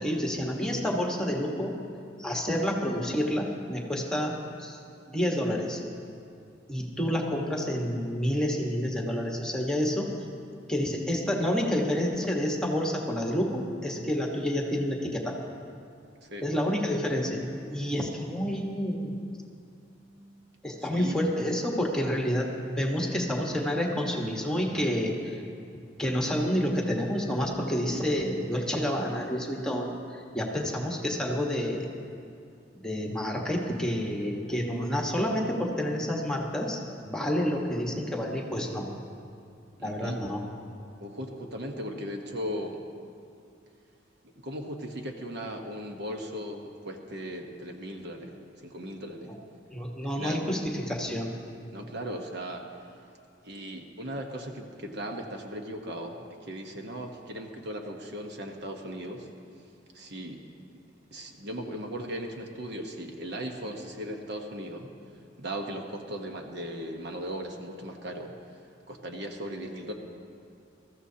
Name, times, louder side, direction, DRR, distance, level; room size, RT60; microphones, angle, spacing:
voice 1, 0.0-1.8 2.2-4.8 5.1-5.8 6.7-10.1 10.7-15.4 16.4-17.4 17.7-19.2 20.6-25.4 26.0-31.9 32.8-36.8 37.0-38.9 39.8-40.4 49.7-51.3, equal, 5° left, -1 dB, 1.3 m, -29 dB
voice 2, 20.8-21.1 39.8-40.2 41.0-42.8 44.2-49.3 50.2-50.4 51.7-52.7 53.4-59.3 59.9-60.4 61.1-64.9 65.4-68.3 68.9-69.9, equal, 60° right, 3 dB, 1.1 m, -37 dB
22.0 x 14.0 x 2.8 m, 2.5 s
head